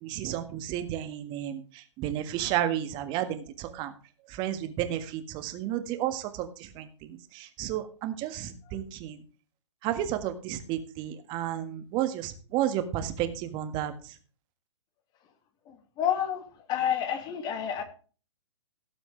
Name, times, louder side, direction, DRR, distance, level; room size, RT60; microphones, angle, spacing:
voice 1, 0.0-1.6 2.0-3.9 4.3-6.5 6.7-9.2 9.8-13.9, right 11 dB, 30° right, 9 dB, 1.7 m, -32 dB
voice 2, 15.7-16.4 16.7-17.8, left 9 dB, 25° left, 8 dB, 2.2 m, -29 dB
17.5 x 7.1 x 3.3 m, 0.37 s
figure-of-eight pair, 125°, 15 cm